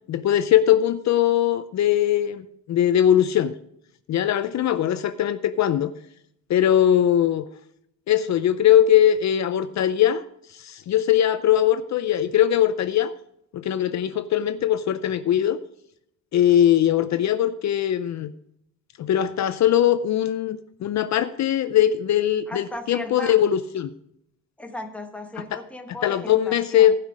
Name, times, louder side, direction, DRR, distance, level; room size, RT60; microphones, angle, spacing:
voice 1, 0.1-3.5 4.1-5.9 6.5-7.4 8.1-10.2 10.5-13.1 13.5-15.6 16.3-18.3 19.0-23.9 25.5-25.6 26.0-27.0, left 11 dB, 55° left, 12 dB, 0.5 m, -20 dB
voice 2, 22.5-23.4 24.6-26.9, left 1 dB, 5° left, 5 dB, 1.0 m, -36 dB
15.0 x 5.8 x 4.9 m, 0.74 s
cardioid pair, 160°, 34 cm